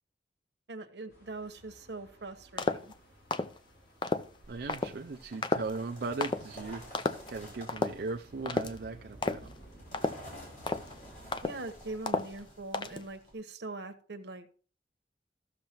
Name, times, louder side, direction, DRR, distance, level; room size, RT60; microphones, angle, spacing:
voice 1, 0.7-2.9 11.4-14.5, right 2 dB, 80° right, 1.0 m, -42 dB
sound 1, 1.1-11.8, right 1 dB, 70° left, 3.9 m, -57 dB
sound 2, 2.6-2.9 3.3-3.6 4.0-4.3 4.7-4.9 5.4-5.8 6.2-6.4 6.9-7.3 7.7-8.0 8.5-8.8 9.2-9.5 9.9-10.3 10.7-10.9 11.3-11.7 12.1-12.4 12.7-13.1, left 3 dB, 25° left, 0.4 m, -31 dB
sound 3, 4.4-13.3, equal, 45° left, 4.3 m, -51 dB
voice 2, 4.5-9.5, right 3 dB, 65° right, 0.4 m, -38 dB
15.0 x 6.6 x 2.9 m
head